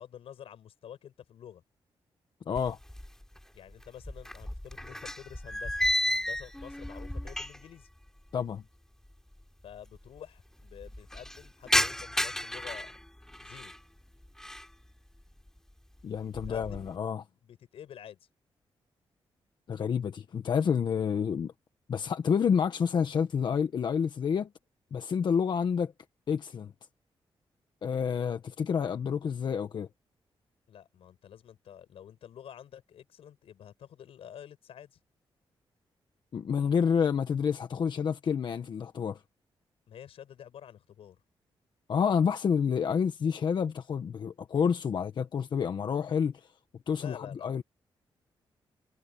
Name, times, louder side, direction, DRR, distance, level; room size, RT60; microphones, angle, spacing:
voice 1, 0.0-1.6 3.5-5.8 6.1-7.9 9.6-12.9 13.4-13.7 16.2-16.9 17.2-18.2 30.7-35.0 39.9-41.2 46.9-47.5, left 9 dB, 90° left, 7.3 m, -49 dB
voice 2, 2.5-2.8 8.3-8.6 16.0-17.2 19.7-21.5 21.9-24.5 24.9-25.9 26.3-26.7 27.8-29.9 36.3-39.2 41.9-46.5 46.9-47.6, left 7 dB, 55° left, 1.2 m, -29 dB
sound 1, 2.6-3.4 3.7-7.8 8.1-8.2 9.1-9.2 9.3-9.4 9.7-10.2 10.6-13.8 14.2-14.7 15.2-15.6 16.0-16.9, left 1 dB, 5° left, 4.9 m, -33 dB
wide cardioid pair, 155°, 10 cm